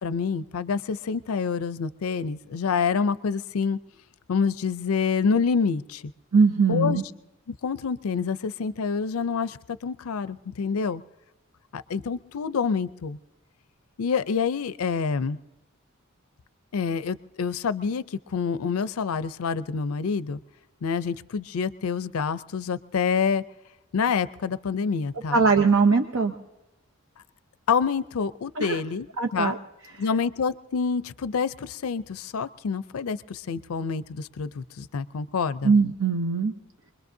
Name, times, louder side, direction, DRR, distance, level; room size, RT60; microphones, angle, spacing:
voice 1, 0.0-3.8 4.3-6.1 6.7-7.0 7.6-11.0 11.7-13.2 14.0-15.4 16.7-20.4 20.8-23.4 23.9-25.4 27.7-29.1 29.3-29.6 30.0-35.7, left 5 dB, 85° left, 14 dB, 0.5 m, -27 dB
voice 2, 6.3-7.0 25.3-26.3 28.6-28.8 29.2-29.6 35.6-36.5, right 4 dB, 70° right, 6 dB, 0.8 m, -21 dB
24.5 x 21.5 x 2.7 m, 1.0 s
head